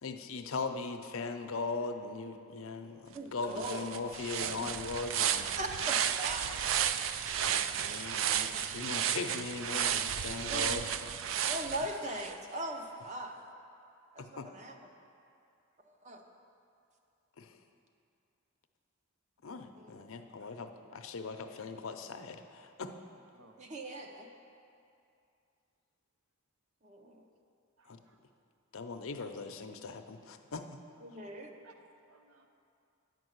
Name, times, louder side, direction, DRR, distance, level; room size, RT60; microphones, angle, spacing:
voice 1, 0.0-5.5 7.4-10.9 14.2-14.5 17.4-17.6 19.4-22.9 27.9-28.0 28.7-30.7, left 4 dB, 70° left, 7 dB, 0.6 m, -39 dB
voice 2, 3.1-3.9 5.6-6.5 10.5-10.8 11.5-13.3 14.1-14.8 16.0-16.2 19.7-20.0 23.6-24.3 26.8-27.2 31.0-31.5, right 1 dB, 35° right, 3 dB, 0.7 m, -40 dB
sound 1, 3.2-3.3 3.6-12.3, right 9 dB, 60° right, 0.3 m, -33 dB
voice 3, 4.4-4.7 6.2-6.6 20.4-20.5 21.3-21.4 23.3-23.6 27.8-28.2 31.6-32.5, right 2 dB, 80° right, 5 dB, 0.7 m, -51 dB
9.5 x 5.3 x 7.9 m, 2.6 s
head